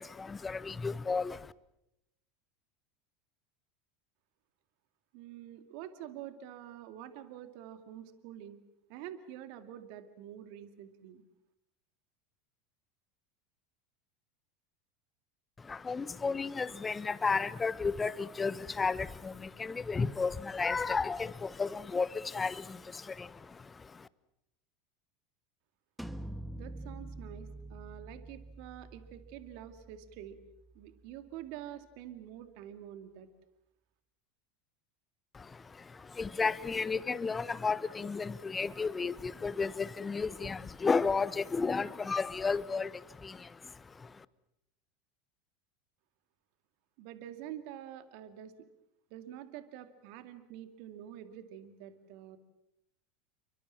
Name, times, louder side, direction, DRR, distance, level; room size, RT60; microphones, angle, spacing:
voice 1, 0.0-1.5 15.6-24.1 35.3-44.2, left 4 dB, 20° left, 1.2 m, -33 dB
voice 2, 5.1-8.6 8.9-11.2 26.6-30.4 30.7-33.3 47.0-48.5 49.1-52.4, right 11 dB, 60° right, 2.2 m, -47 dB
sound 1, 26.0-31.6, right 1 dB, ahead, 1.8 m, -47 dB
29.5 x 24.0 x 7.4 m
hypercardioid pair, 80°, 0 cm